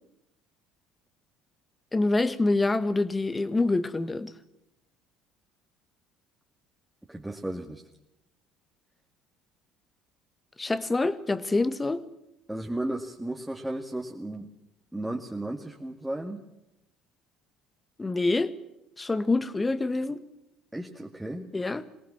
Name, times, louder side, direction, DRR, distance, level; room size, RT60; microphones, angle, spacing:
voice 1, 1.9-4.3 10.6-12.0 18.0-18.5 19.0-20.2 21.5-21.8, left 2 dB, 20° left, 14 dB, 1.5 m, -26 dB
voice 2, 7.1-7.8 12.5-14.5 14.9-16.5 20.7-21.5, right 1 dB, 10° right, 1 dB, 2.1 m, -34 dB
22.5 x 18.5 x 7.2 m, 0.88 s
hypercardioid pair, 65°, 0 cm